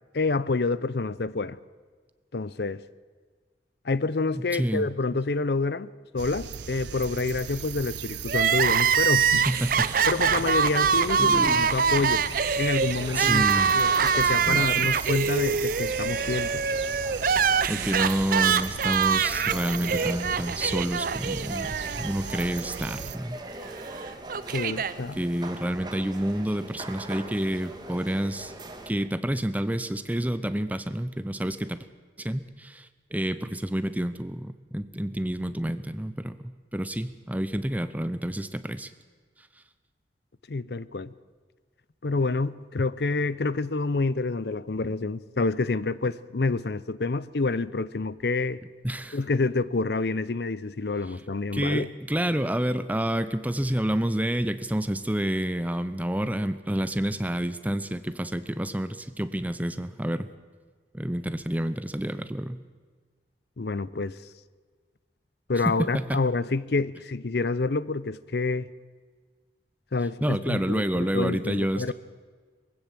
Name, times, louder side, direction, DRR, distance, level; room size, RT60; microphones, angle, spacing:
voice 1, 0.1-1.6 2.3-2.8 3.8-9.4 10.1-12.3 12.5-13.4 13.7-16.6 24.5-25.2 40.5-41.1 42.0-48.6 49.1-51.9 63.6-64.2 65.5-68.7 69.9-71.9, left 3 dB, 65° left, 0.6 m, -28 dB
voice 2, 4.3-4.9 9.3-9.9 11.2-11.6 13.1-13.7 14.2-15.1 17.7-23.4 25.2-28.5 28.9-31.8 32.2-38.9 48.8-49.2 51.5-60.3 60.9-62.6 65.7-66.2 70.2-71.9, right 1 dB, 10° right, 0.7 m, -29 dB
sound 1, 6.2-23.2, right 7 dB, 90° right, 0.6 m, -38 dB
Crying sobbing, 8.3-22.4 22.7-22.8 23.8-24.9, right 6 dB, 50° right, 0.6 m, -24 dB
sound 2, 9.6-28.9, right 2 dB, 25° right, 1.6 m, -41 dB
22.5 x 15.5 x 7.6 m
head